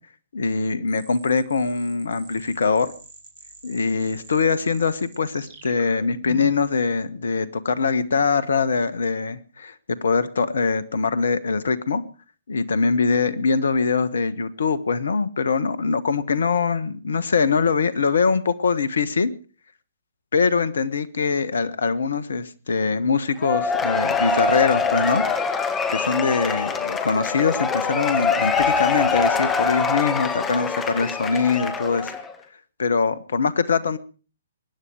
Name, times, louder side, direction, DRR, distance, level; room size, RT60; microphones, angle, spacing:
voice 1, 0.3-2.9 3.6-9.7 10.0-12.0 12.5-19.3 20.3-25.2 25.5-32.1 32.8-34.0, left 5 dB, 65° left, 17 dB, 1.4 m, -23 dB
sound 1, 0.9-6.7, right 4 dB, 40° right, 5.4 m, -45 dB
Cheering / Applause / Crowd, 23.4-32.3, left 5 dB, 15° left, 1.9 m, -24 dB
23.0 x 10.0 x 4.8 m, 0.37 s
figure-of-eight pair, 125°, 0 cm